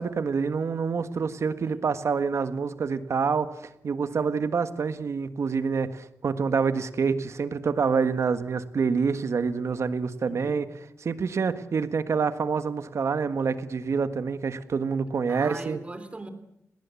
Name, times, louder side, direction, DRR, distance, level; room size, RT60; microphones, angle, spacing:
voice 1, 0.0-3.5 3.8-15.8, right 5 dB, 65° right, 11 dB, 1.6 m, -27 dB
voice 2, 10.3-10.7 15.3-16.3, right 2 dB, 25° right, 10 dB, 3.2 m, -40 dB
29.0 x 19.0 x 8.5 m, 0.82 s
wide cardioid pair, 165°, 5 cm